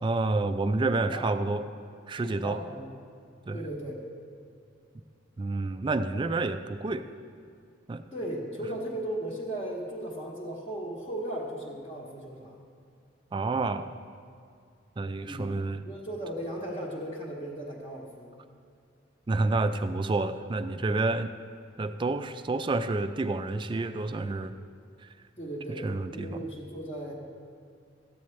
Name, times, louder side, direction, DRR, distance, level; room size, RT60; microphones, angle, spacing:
voice 1, 0.0-1.7 2.1-2.6 3.5-3.6 5.4-7.1 7.9-8.0 13.3-13.9 15.0-15.8 19.3-21.3 21.8-24.5 25.0-25.1 25.8-26.4, right 3 dB, 25° right, 10 dB, 0.3 m, -29 dB
voice 2, 0.9-1.2 2.2-2.9 3.5-4.0 8.1-12.6 15.3-15.5 15.8-18.3 25.4-27.1, right 1 dB, 30° left, -6 dB, 1.0 m, -36 dB
13.5 x 8.7 x 3.2 m, 2.4 s
head